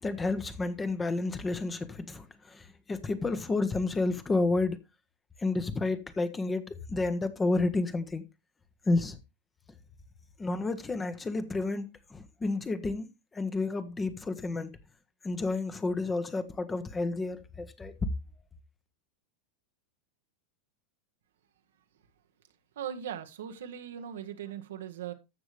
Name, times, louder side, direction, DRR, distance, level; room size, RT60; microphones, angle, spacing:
voice 1, 0.0-4.8 5.4-8.2 8.9-9.2 10.4-14.8 15.2-17.9, left 3 dB, 15° left, 1.2 m, -31 dB
voice 2, 22.7-25.1, right 9 dB, 75° right, 1.4 m, -39 dB
14.0 x 6.2 x 3.3 m
hypercardioid pair, 100°, 0 cm